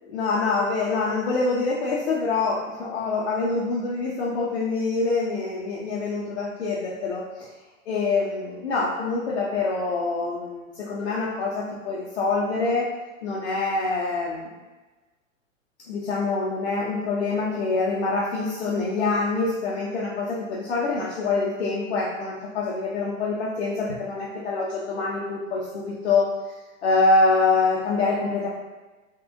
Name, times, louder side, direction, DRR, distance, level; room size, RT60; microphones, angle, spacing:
voice 1, 0.0-7.5 7.9-12.9 13.2-14.5 15.9-26.3 26.8-28.5, left 3 dB, 55° left, -5 dB, 0.6 m, -25 dB
3.6 x 2.3 x 2.6 m, 1.2 s
figure-of-eight pair, 100°, 40 cm